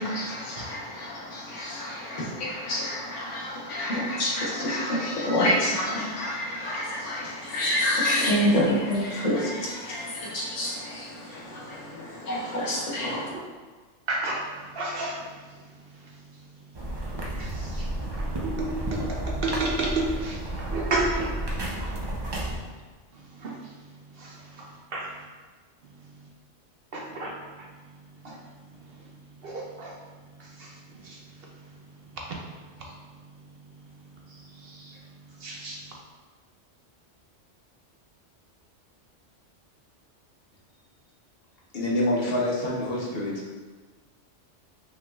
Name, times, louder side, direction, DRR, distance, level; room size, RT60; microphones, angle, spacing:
voice 1, 0.0-13.3, left 1 dB, 75° left, -4 dB, 1.3 m, -28 dB
voice 2, 14.1-14.4 14.8-15.2 17.4-17.5 18.6-19.0 19.4-21.3 23.4-23.5 24.9-25.0 26.9-27.3 28.2-28.3 29.4-29.9 31.1-31.2 35.4-35.8, right 2 dB, 60° right, -2 dB, 0.7 m, -29 dB
sound 1, 16.7-22.6, right 1 dB, 40° right, 0.3 m, -32 dB
voice 3, 41.7-43.3, left 1 dB, 55° left, -4 dB, 1.1 m, -26 dB
5.7 x 3.8 x 2.3 m, 1.4 s
omnidirectional pair, 1.3 m